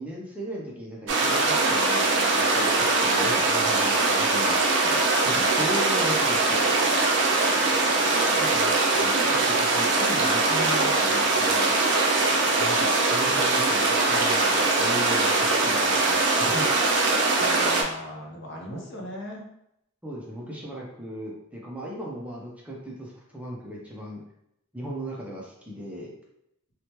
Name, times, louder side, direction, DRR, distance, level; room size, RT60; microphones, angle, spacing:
voice 1, 0.0-4.6 5.2-6.8 8.4-11.7 12.6-16.7 18.7-18.8 20.0-24.2 24.7-26.1, equal, 5° right, -4 dB, 0.4 m, -37 dB
sound 1, 1.1-17.8, right 3 dB, 60° right, 0.5 m, -22 dB
voice 2, 3.1-3.5 4.8-5.0 7.5-8.3 9.0-9.1 12.3-12.6 17.4-19.5, equal, 60° left, -1 dB, 0.7 m, -39 dB
3.0 x 2.1 x 2.8 m, 0.78 s
head